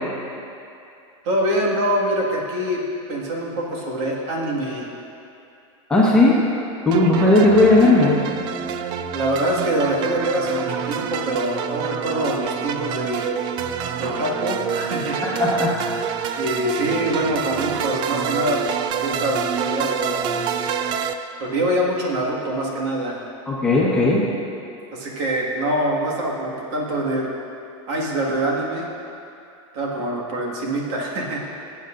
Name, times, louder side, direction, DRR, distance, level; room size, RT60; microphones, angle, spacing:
voice 1, 1.2-2.8 3.1-4.9 9.1-13.3 14.0-15.2 16.4-18.6 19.0-20.4 21.4-23.3 24.9-27.3 27.9-28.9 29.7-31.5, right 1 dB, 55° right, -3 dB, 2.0 m, -24 dB
voice 2, 5.9-6.4 6.8-8.2 15.2-15.7 23.5-24.3, left 2 dB, 5° left, -7 dB, 1.3 m, -16 dB
sound 1, 6.9-21.1, right 7 dB, 30° right, 0.3 m, -27 dB
19.0 x 8.3 x 2.6 m, 2.6 s
supercardioid pair, 160°, 17 cm